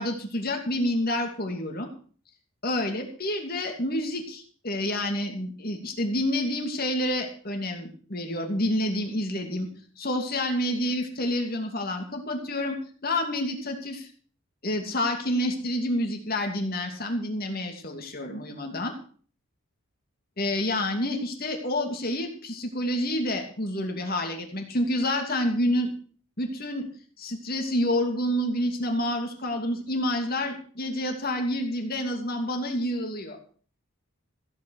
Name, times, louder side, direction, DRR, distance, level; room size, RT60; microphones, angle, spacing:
voice 1, 0.0-1.9 2.6-9.7 10.0-14.1 14.6-18.9 20.4-25.9 26.4-26.9 27.2-33.4, left 1 dB, 45° left, 3 dB, 2.7 m, -28 dB
15.0 x 8.7 x 6.5 m, 0.44 s
head